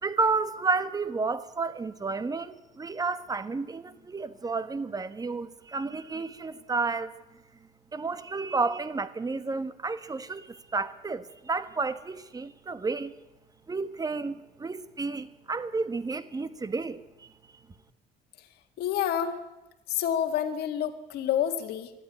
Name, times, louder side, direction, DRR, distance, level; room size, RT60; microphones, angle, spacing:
voice 1, 0.0-7.1 7.9-13.1 13.7-17.3, right 4 dB, 20° right, 1.3 m, -31 dB
voice 2, 18.8-19.4 19.9-21.9, left 9 dB, 75° left, 1.9 m, -28 dB
20.5 x 13.0 x 9.8 m
cardioid pair, 110°, 17 cm